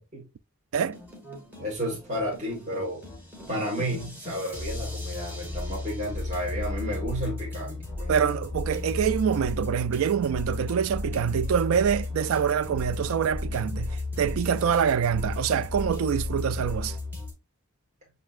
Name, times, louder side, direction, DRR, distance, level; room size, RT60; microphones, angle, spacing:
sound 1, 0.7-17.3, left 2 dB, 10° right, 1.3 m, -34 dB
voice 1, 1.6-3.0 3.5-8.3, equal, 35° right, 1.4 m, -32 dB
voice 2, 8.1-17.0, right 8 dB, 75° right, 0.3 m, -25 dB
7.2 x 2.7 x 2.4 m
head